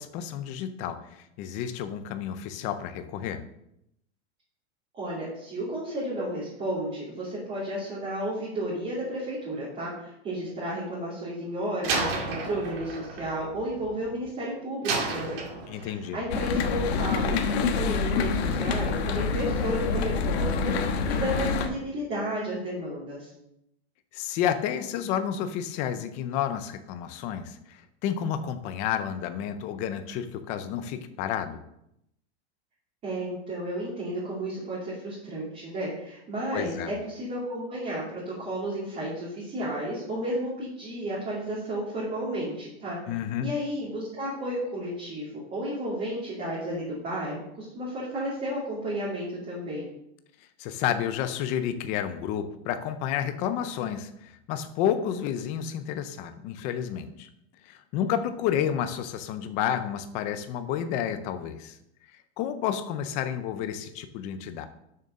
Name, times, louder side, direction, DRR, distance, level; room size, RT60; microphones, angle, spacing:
voice 1, 0.0-3.4 15.7-16.2 24.1-31.6 36.5-36.9 43.1-43.5 50.6-57.3 57.6-61.8 62.4-64.7, left 9 dB, 20° left, 10 dB, 0.4 m, -30 dB
voice 2, 4.9-15.4 15.7-23.3 33.0-43.0 43.4-49.9, right 1 dB, 20° right, -7 dB, 2.6 m, -32 dB
Slam, 11.8-14.3 14.8-16.1, right 3 dB, 55° right, 2.5 m, -32 dB
sound 1, 16.3-21.7, left 5 dB, 65° left, 1.3 m, -27 dB
6.6 x 6.6 x 6.4 m, 0.80 s
supercardioid pair, 170°, 34 cm